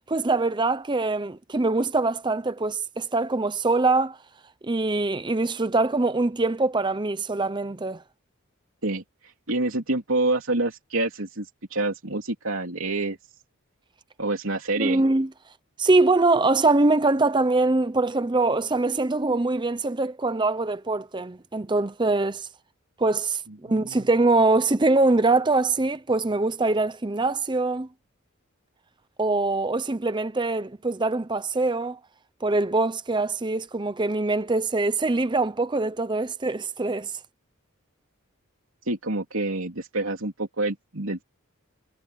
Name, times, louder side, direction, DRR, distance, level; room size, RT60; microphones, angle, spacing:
voice 1, 0.1-4.2 4.6-8.0 14.8-15.3 15.8-22.5 23.0-27.9 29.2-32.0 32.4-37.1, right 2 dB, 20° right, 0.7 m, -23 dB
voice 2, 9.5-13.2 14.2-15.0 23.7-24.1 38.9-41.2, right 2 dB, 70° right, 3.3 m, -27 dB
head